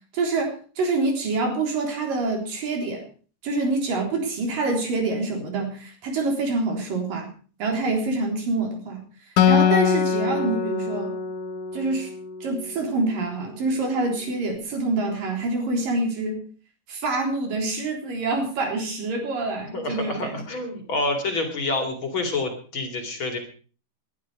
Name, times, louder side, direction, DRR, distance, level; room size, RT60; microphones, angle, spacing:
voice 1, 0.1-3.0 3.4-7.3 7.6-9.0 9.5-11.1 11.7-12.1 12.4-16.4 16.9-20.4, right 3 dB, 85° right, 2 dB, 5.4 m, -26 dB
Acoustic guitar, 9.4-12.8, left 7 dB, 70° left, 2.3 m, -23 dB
voice 2, 19.7-23.4, left 2 dB, 40° left, 5 dB, 3.0 m, -28 dB
20.5 x 11.0 x 4.9 m, 0.40 s
omnidirectional pair, 3.8 m